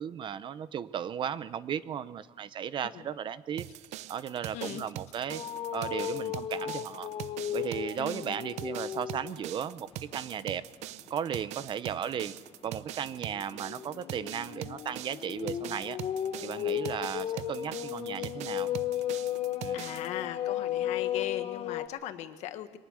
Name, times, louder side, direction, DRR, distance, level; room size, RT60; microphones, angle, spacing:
voice 1, 0.0-3.7 4.1-5.4 5.7-7.1 7.5-10.6 11.1-12.3 12.6-16.0 16.4-18.7 19.6-19.8, right 8 dB, 45° right, 16 dB, 0.8 m, -35 dB
sound 1, 3.6-20.1, right 14 dB, 80° right, 0.6 m, -43 dB
voice 2, 4.5-4.9 8.0-8.4 19.7-22.8, left 11 dB, 90° left, 9 dB, 1.5 m, -39 dB
sound 2, 5.3-9.4 9.9-10.2 12.6-21.9, left 11 dB, 55° left, 1.2 m, -35 dB
23.5 x 19.0 x 6.4 m, 1.3 s
cardioid pair, 150°, 11 cm